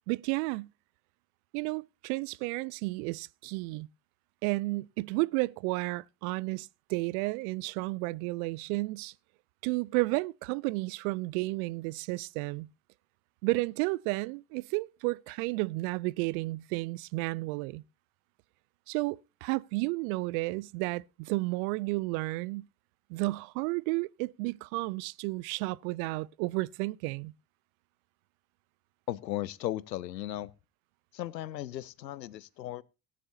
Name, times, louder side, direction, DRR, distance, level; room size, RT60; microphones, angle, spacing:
voice 1, 0.1-0.7 1.5-3.9 4.4-9.1 9.6-12.7 13.4-17.8 18.9-22.7 23.1-27.3, right 23 dB, 60° right, 0.5 m, -32 dB
voice 2, 29.1-30.5 31.1-32.8, left 13 dB, 85° left, 0.6 m, -36 dB
17.0 x 9.9 x 2.7 m
figure-of-eight pair, 60°, 49 cm